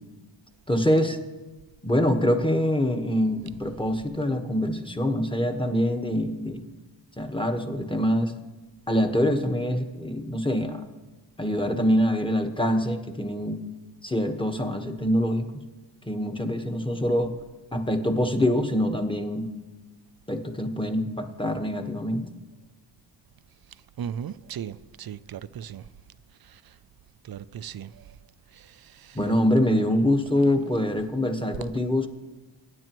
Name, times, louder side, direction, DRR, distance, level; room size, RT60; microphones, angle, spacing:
voice 1, 0.7-1.2 1.8-6.7 7.2-8.3 8.9-10.8 11.4-13.6 14.0-15.4 16.1-17.3 17.7-19.5 20.3-22.3 29.1-32.1, equal, 10° left, 1.2 m, -25 dB
voice 2, 24.0-25.8 27.3-27.9 29.0-29.2 31.6-31.7, right 9 dB, 55° right, 0.5 m, -36 dB
20.5 x 9.4 x 3.1 m
cardioid pair, 65°, 44 cm